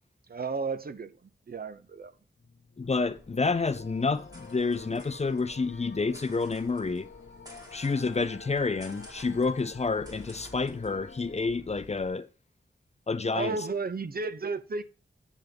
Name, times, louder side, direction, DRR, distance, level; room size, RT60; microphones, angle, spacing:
voice 1, 0.3-2.1 13.3-14.8, right 4 dB, 50° right, 0.6 m, -33 dB
sound 1, 2.4-11.4, left 4 dB, 70° left, 1.0 m, -49 dB
voice 2, 2.8-7.1 7.7-12.3 13.1-13.6, left 4 dB, 35° left, 0.5 m, -29 dB
sound 2, 2.8-12.1, equal, 20° right, 2.0 m, -52 dB
9.2 x 3.5 x 5.1 m
wide cardioid pair, 85°, 20 cm